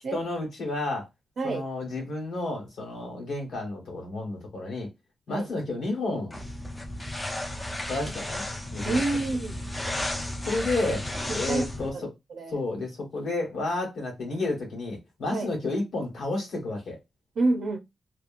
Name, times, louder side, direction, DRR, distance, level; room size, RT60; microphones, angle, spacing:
voice 1, 0.1-1.1 1.4-4.9 5.3-6.3 7.9-8.4 8.7-9.0 10.4-11.0 11.3-11.9 12.5-17.0, left 2 dB, 90° left, 1.4 m, -31 dB
voice 2, 1.4-1.7 5.3-5.5 8.8-9.6 11.3-11.7 11.9-12.0 12.3-12.6 15.3-15.5 17.4-17.8, right 3 dB, 65° right, 0.6 m, -28 dB
sound 1, 6.3-11.9, left 1 dB, 20° left, 0.5 m, -33 dB
2.8 x 2.3 x 2.5 m
wide cardioid pair, 170°, 0 cm